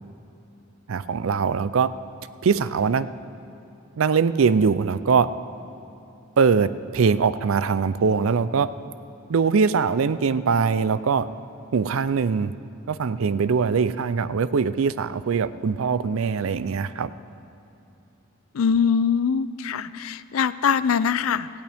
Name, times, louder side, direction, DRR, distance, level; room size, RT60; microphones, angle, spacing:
voice 1, 0.9-1.9 2.4-3.1 4.0-5.3 6.4-8.7 9.3-11.3 11.7-12.5 12.9-17.1, right 5 dB, 80° right, 15 dB, 0.4 m, -22 dB
voice 2, 18.5-21.5, left 6 dB, 80° left, 16 dB, 0.4 m, -22 dB
18.0 x 15.5 x 3.5 m, 2.9 s
head